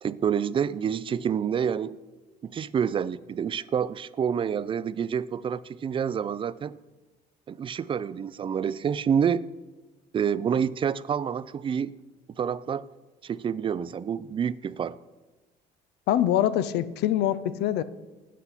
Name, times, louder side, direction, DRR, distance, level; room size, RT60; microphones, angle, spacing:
voice 1, 0.0-2.0 2.4-6.8 7.5-9.4 10.1-11.9 12.4-12.9 13.2-15.0, right 7 dB, 30° right, 18 dB, 0.3 m, -28 dB
voice 2, 16.1-17.8, left 11 dB, 80° left, 15 dB, 0.5 m, -24 dB
8.3 x 7.7 x 5.6 m, 1.2 s
cardioid pair, 110°, 17 cm